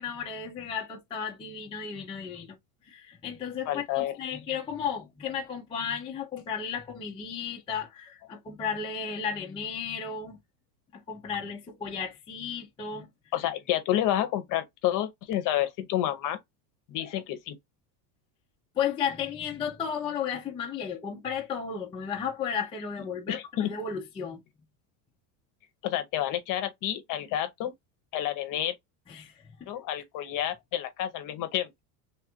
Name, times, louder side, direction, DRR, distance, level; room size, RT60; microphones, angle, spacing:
voice 1, 0.0-2.6 2.8-10.4 10.9-13.1 18.8-24.4 29.1-29.7, left 7 dB, 10° left, 0.5 m, -34 dB
voice 2, 3.7-4.1 13.3-16.4 16.9-17.6 23.3-23.7 25.8-27.7 28.1-28.7 29.7-31.7, left 12 dB, 40° left, 0.8 m, -29 dB
3.4 x 2.5 x 4.2 m
supercardioid pair, 155°, 49 cm